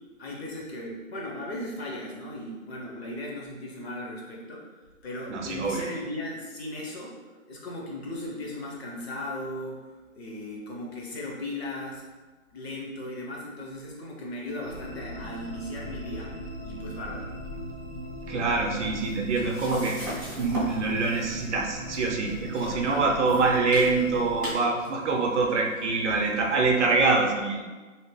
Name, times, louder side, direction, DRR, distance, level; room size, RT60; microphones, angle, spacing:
voice 1, 0.2-4.7 5.0-7.1 7.5-12.1 12.5-16.3 16.6-17.3 22.7-23.1, left 1 dB, 50° left, -3 dB, 0.8 m, -37 dB
voice 2, 5.3-5.8 18.3-20.0 20.4-27.6, right 3 dB, 60° right, 0 dB, 0.6 m, -25 dB
sound 1, 14.6-24.5, equal, 80° left, 1.1 m, -39 dB
sound 2, 18.6-26.9, equal, 15° left, 0.4 m, -40 dB
2.8 x 2.0 x 3.0 m, 1.3 s
hypercardioid pair, 155°, 41 cm